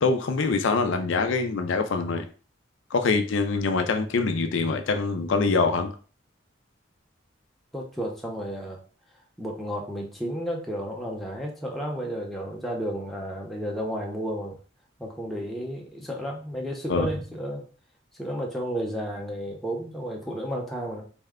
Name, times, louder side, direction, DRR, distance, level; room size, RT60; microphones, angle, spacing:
voice 1, 0.0-2.3 2.9-5.9 16.9-17.1, left 4 dB, 75° left, 6 dB, 0.5 m, -24 dB
voice 2, 7.7-8.8 9.4-14.6 15.0-17.7 18.2-21.0, equal, ahead, -2 dB, 0.7 m, -32 dB
4.2 x 2.2 x 3.6 m, 0.39 s
head